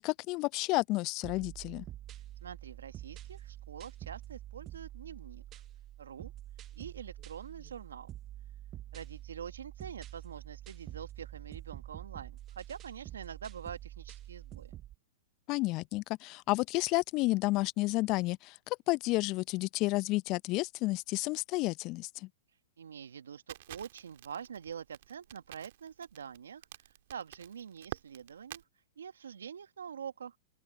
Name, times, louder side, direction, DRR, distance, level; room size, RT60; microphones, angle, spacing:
voice 1, 0.0-1.9 15.5-22.3, left 21 dB, 40° left, 0.5 m, -31 dB
sound 1, 1.2-15.0, right 13 dB, 30° right, 0.5 m, -47 dB
voice 2, 2.1-5.4 6.0-6.3 6.8-8.1 8.9-14.8 22.5-30.4, right 7 dB, 75° right, 1.2 m, -46 dB
Crackle, 23.5-28.6, right 16 dB, 55° right, 1.8 m, -48 dB
open air
hypercardioid pair, 105°, 0 cm